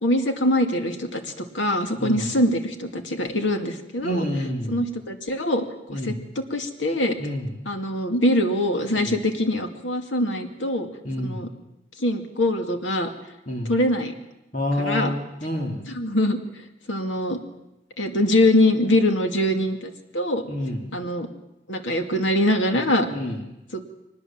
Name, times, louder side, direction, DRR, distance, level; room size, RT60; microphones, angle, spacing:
voice 1, 0.0-4.2 4.7-7.2 7.7-10.9 11.2-11.5 12.0-13.1 13.7-14.2 14.8-15.1 15.9-16.4 16.9-17.4 18.0-20.4 20.9-21.3 21.7-23.1 23.7-23.8, left 1 dB, 90° left, 5 dB, 2.3 m, -23 dB
voice 2, 4.0-4.8 5.9-6.2 7.2-7.5 8.9-9.1 11.0-11.4 13.5-13.7 14.5-15.8 20.5-20.8 23.1-23.4, left 1 dB, 45° left, 1 dB, 3.1 m, -28 dB
24.0 x 20.0 x 7.5 m, 0.92 s
head